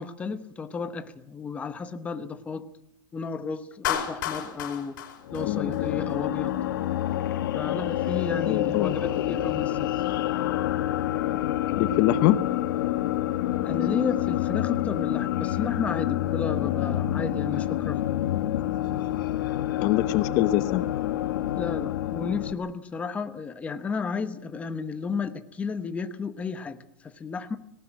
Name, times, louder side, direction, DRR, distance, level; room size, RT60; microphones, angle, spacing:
voice 1, 0.0-2.7 3.1-5.0 5.3-6.6 7.5-10.0 13.6-18.0 21.5-27.6, left 5 dB, 10° left, 9 dB, 1.0 m, -33 dB
Clapping, 3.8-6.1, left 10 dB, 65° left, 4.9 m, -32 dB
sound 1, 5.2-22.5, left 13 dB, 80° left, 1.7 m, -27 dB
voice 2, 8.4-8.9 9.3-9.4 11.8-12.4 19.8-20.9, left 14 dB, 35° left, 12 dB, 0.9 m, -24 dB
19.0 x 18.5 x 8.9 m, 0.71 s
supercardioid pair, 165°, 11 cm